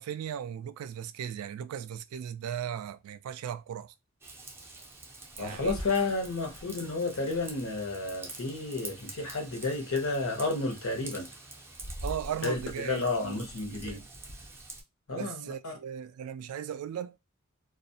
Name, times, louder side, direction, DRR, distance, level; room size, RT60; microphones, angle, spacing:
voice 1, 0.0-3.9 5.4-5.8 12.0-13.4 13.7-14.1 15.2-17.2, right 9 dB, 90° right, 0.3 m, -37 dB
Raindrop / Vehicle horn car horn honking / Trickle dribble, 4.2-14.8, right 1 dB, 10° right, 0.4 m, -44 dB
voice 2, 5.4-11.3 12.4-14.0 15.1-15.7, left 3 dB, 75° left, 0.8 m, -31 dB
2.3 x 2.0 x 2.6 m
head